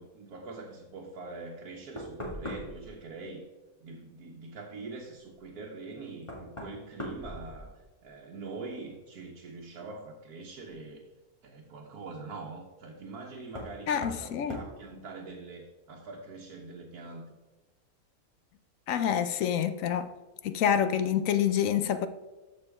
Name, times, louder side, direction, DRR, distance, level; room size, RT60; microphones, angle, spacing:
voice 1, 0.0-3.4 3.8-11.0 11.4-17.4, right 3 dB, 85° right, 1.5 m, -44 dB
Knock, 2.0-2.9 5.3-5.4 6.2-8.1 8.4-9.0 10.7-10.8 13.5-13.8 14.0-14.2 14.5-14.7, left 1 dB, 20° left, 2.0 m, -40 dB
voice 2, 13.9-14.6 18.9-20.1 20.4-22.1, left 9 dB, 70° left, 0.9 m, -27 dB
14.0 x 5.0 x 3.5 m
omnidirectional pair, 1.6 m